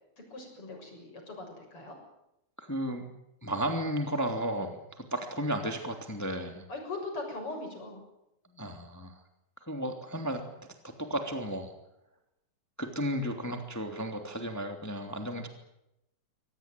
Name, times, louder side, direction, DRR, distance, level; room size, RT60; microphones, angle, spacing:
voice 1, 0.2-2.0 6.7-8.0, left 2 dB, 45° left, 2 dB, 7.8 m, -40 dB
voice 2, 2.6-3.1 3.4-6.6 8.5-9.2 9.6-10.4 11.0-11.7 12.8-15.5, right 1 dB, 5° left, 5 dB, 2.6 m, -33 dB
26.0 x 18.0 x 9.2 m, 0.85 s
omnidirectional pair, 3.4 m